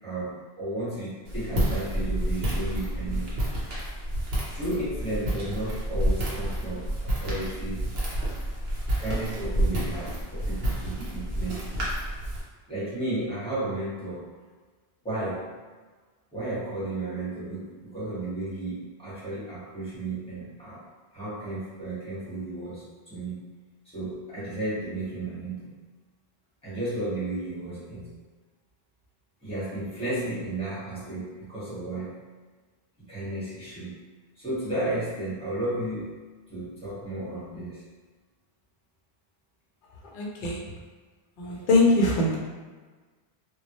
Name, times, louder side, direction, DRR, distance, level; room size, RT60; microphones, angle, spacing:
voice 1, 0.0-3.3 4.5-7.9 9.0-11.7 12.7-14.2 15.0-15.5 16.3-20.8 21.1-23.4 23.9-25.7 26.6-28.1 29.4-32.1 33.0-34.0 34.3-36.1 36.5-37.8 41.5-41.6, right 1 dB, 5° left, -11 dB, 1.0 m, -33 dB
Walk footsteps, 1.2-12.4, right 1 dB, 70° right, 0.9 m, -29 dB
voice 2, 40.1-40.7 41.4-42.4, left 2 dB, 60° left, -3 dB, 0.6 m, -22 dB
2.1 x 2.0 x 2.9 m, 1.4 s
omnidirectional pair, 1.1 m